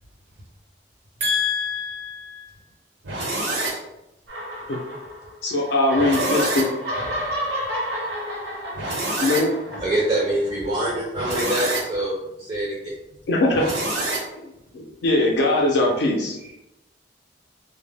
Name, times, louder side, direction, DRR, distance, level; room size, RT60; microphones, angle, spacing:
voice 1, 1.2-2.5 3.0-3.8 6.0-6.6 8.7-9.4 11.1-11.8 13.5-14.2, equal, 90° right, -4 dB, 0.9 m, -26 dB
sound 1, 4.3-5.4 5.7-10.7, equal, 70° right, 0.7 m, -30 dB
voice 2, 5.4-6.6 9.2-9.5 13.3-13.6 14.7-16.6, left 2 dB, 70° left, -1 dB, 0.4 m, -21 dB
voice 3, 9.8-12.9, right 1 dB, 30° right, -5 dB, 0.4 m, -25 dB
2.1 x 2.0 x 3.4 m, 0.92 s
head